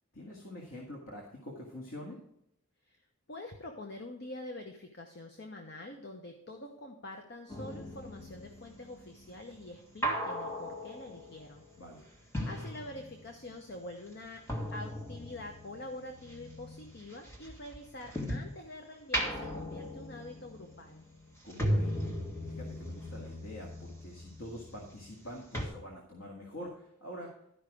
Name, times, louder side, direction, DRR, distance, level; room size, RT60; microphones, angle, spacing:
voice 1, 0.1-2.2 11.8-12.0 21.4-22.2 22.5-27.4, left 1 dB, 75° left, -1 dB, 1.8 m, -45 dB
voice 2, 2.9-11.6 12.5-14.4 14.7-21.1, left 1 dB, 50° left, 3 dB, 0.9 m, -46 dB
sound 1, 7.5-13.5 13.7-18.6 19.0-25.3 25.5-25.7, equal, 15° left, 1.7 m, -38 dB
12.0 x 5.6 x 4.9 m, 0.75 s
head